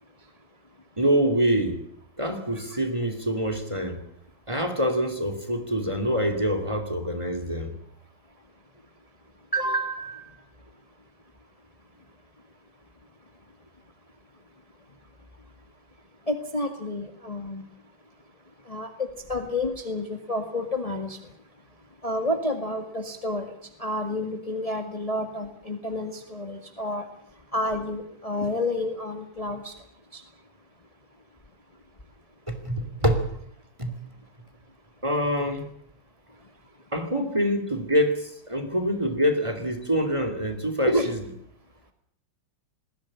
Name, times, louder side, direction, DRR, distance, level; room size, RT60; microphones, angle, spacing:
voice 1, 1.0-1.8 2.2-4.0 4.5-7.7 32.5-33.3 33.8-34.0 35.0-35.7 36.9-41.2, equal, 15° right, 7 dB, 2.6 m, -25 dB
voice 2, 9.5-10.4 16.3-17.6 18.7-21.3 22.0-23.5 23.8-27.1 27.5-29.7 30.1-30.2 40.9-41.1, left 1 dB, 20° left, 5 dB, 1.9 m, -29 dB
20.5 x 16.0 x 10.0 m, 0.68 s
omnidirectional pair, 2.2 m